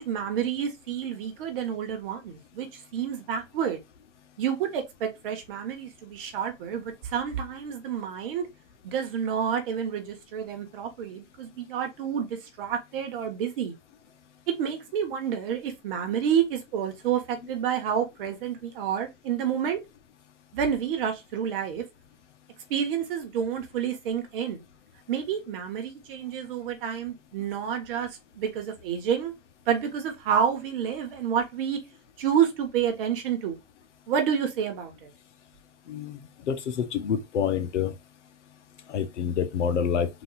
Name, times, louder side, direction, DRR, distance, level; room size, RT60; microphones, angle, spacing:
voice 1, 0.0-2.7 2.9-3.8 4.4-8.5 8.8-13.7 14.6-19.8 20.5-21.8 22.7-24.6 25.1-28.1 28.3-29.3 29.7-31.8 32.2-33.6 34.1-35.1, right 8 dB, 45° right, 1.3 m, -29 dB
voice 2, 36.9-37.9 38.9-40.1, left 7 dB, 65° left, 1.1 m, -26 dB
4.0 x 2.7 x 3.9 m
hypercardioid pair, 155°, 38 cm